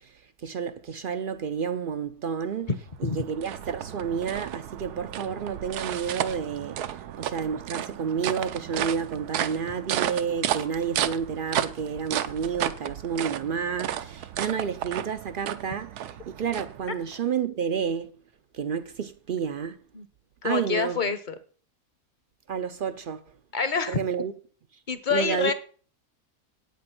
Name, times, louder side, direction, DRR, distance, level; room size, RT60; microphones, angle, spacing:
voice 1, 0.4-2.7 3.0-18.1 18.5-19.7 20.4-21.0 22.5-23.2 23.9-24.3 25.1-25.5, right 7 dB, 70° right, 0.5 m, -30 dB
sound 1, 2.7-17.2, right 11 dB, 85° right, 1.2 m, -33 dB
voice 2, 20.4-21.4 23.5-24.0 24.9-25.5, left 5 dB, 40° left, 0.8 m, -27 dB
8.7 x 8.4 x 5.8 m
omnidirectional pair, 1.6 m